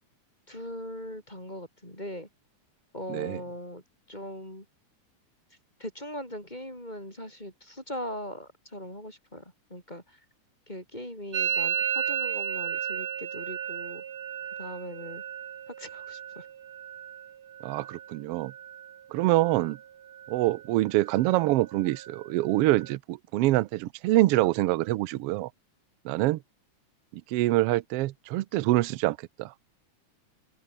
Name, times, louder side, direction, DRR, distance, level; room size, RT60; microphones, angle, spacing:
voice 1, 0.5-2.3 2.9-3.8 4.1-4.7 5.8-10.2 10.7-14.0 14.6-15.2 15.7-16.5, left 1 dB, 15° left, 6.3 m, -40 dB
voice 2, 3.1-3.4 17.6-18.5 19.1-19.8 20.3-25.5 26.0-26.4 27.3-29.5, right 17 dB, 80° right, 1.3 m, -25 dB
Musical instrument, 11.3-19.0 19.2-19.8 20.1-20.7 20.9-23.0, right 9 dB, 60° right, 2.8 m, -35 dB
open air
omnidirectional pair, 3.5 m